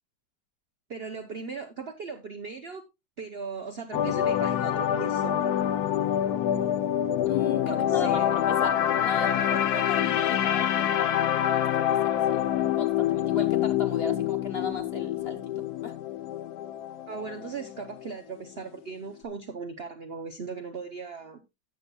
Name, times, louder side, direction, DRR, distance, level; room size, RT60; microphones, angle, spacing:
voice 1, 0.9-2.8 3.2-5.4 7.7-8.4 17.1-21.4, right 5 dB, 75° right, 0.5 m, -38 dB
sound 1, 3.9-18.1 18.4-18.6, left 11 dB, 65° left, 1.1 m, -26 dB
voice 2, 7.2-12.4 12.7-15.9, left 3 dB, 40° left, 1.1 m, -37 dB
17.0 x 6.8 x 2.3 m
omnidirectional pair, 2.1 m